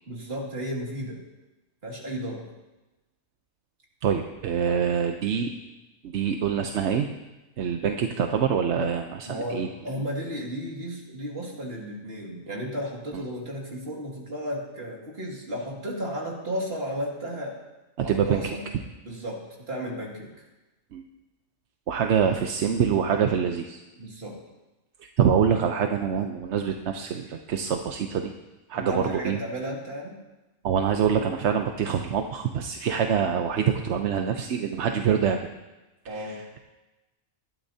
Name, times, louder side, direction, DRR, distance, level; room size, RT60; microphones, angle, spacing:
voice 1, 0.1-1.2 1.8-2.5 4.7-4.8 9.3-17.6 18.0-18.6 19.0-20.3 24.0-24.4 28.7-30.2 36.1-36.4, equal, 45° right, -2 dB, 2.5 m, -34 dB
voice 2, 4.0-5.5 6.0-7.1 7.6-9.7 18.0-18.6 20.9-21.0 21.9-23.8 25.2-28.3 28.7-29.4 30.6-35.5, right 7 dB, 60° right, 5 dB, 0.9 m, -25 dB
19.5 x 12.0 x 2.8 m, 1.1 s
omnidirectional pair, 1.5 m